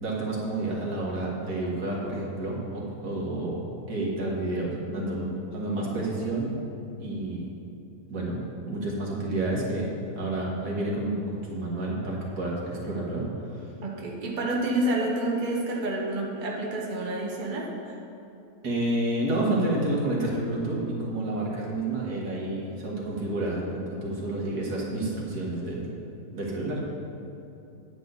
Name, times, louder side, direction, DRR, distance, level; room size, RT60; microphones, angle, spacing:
voice 1, 0.0-6.5 7.0-7.4 8.1-8.4 8.7-13.2 13.5-13.6 18.6-25.9 26.3-26.8, right 2 dB, 85° right, -4 dB, 2.3 m, -29 dB
voice 2, 13.8-17.9, right 1 dB, 35° right, -2 dB, 1.2 m, -29 dB
9.6 x 9.1 x 4.0 m, 2.8 s
omnidirectional pair, 1.6 m